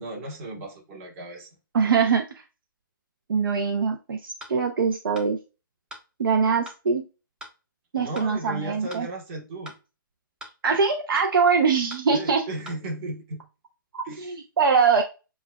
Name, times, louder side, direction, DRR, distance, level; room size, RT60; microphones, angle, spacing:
voice 1, 0.0-1.5 8.0-9.7 12.1-13.4 14.0-14.4, right 2 dB, 40° right, 1.3 m, -35 dB
voice 2, 1.7-2.2 3.3-5.4 6.2-7.0 7.9-9.1 10.6-12.4 13.9-15.0, right 5 dB, 80° right, 0.7 m, -23 dB
sound 1, 4.4-4.6 5.1-5.3 5.9-6.0 6.6-6.8 7.4-7.6 8.1-8.3 8.9-9.1 9.6-9.8 10.4-10.6 11.2-11.3 11.9-12.1 12.6-12.8, equal, 5° right, 0.5 m, -42 dB
7.1 x 2.4 x 2.3 m
hypercardioid pair, 160°, 12 cm